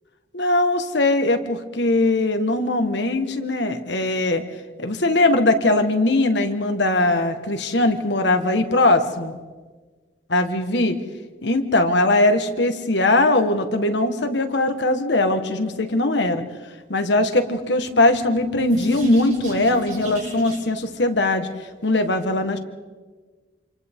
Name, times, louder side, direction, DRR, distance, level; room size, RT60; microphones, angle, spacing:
voice 1, 0.3-4.4 4.8-9.3 10.3-11.0 11.4-16.4 16.9-21.5 21.8-22.6, left 2 dB, 70° left, 7 dB, 1.6 m, -20 dB
sound 1, 17.7-20.8, left 2 dB, 45° right, 7.4 m, -31 dB
28.5 x 27.0 x 3.8 m, 1.4 s
head